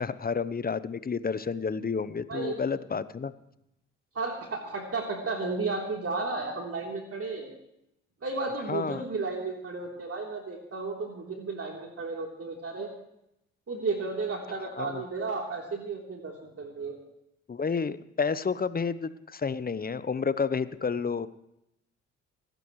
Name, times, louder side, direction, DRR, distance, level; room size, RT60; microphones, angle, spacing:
voice 1, 0.0-3.3 8.7-9.0 14.8-15.0 17.5-21.3, left 5 dB, 25° left, 15 dB, 0.9 m, -30 dB
voice 2, 2.3-2.6 4.1-7.5 8.2-12.9 13.7-17.0, right 3 dB, 40° right, 0 dB, 3.6 m, -33 dB
26.5 x 13.0 x 3.2 m, 0.81 s
hypercardioid pair, 45°, 35 cm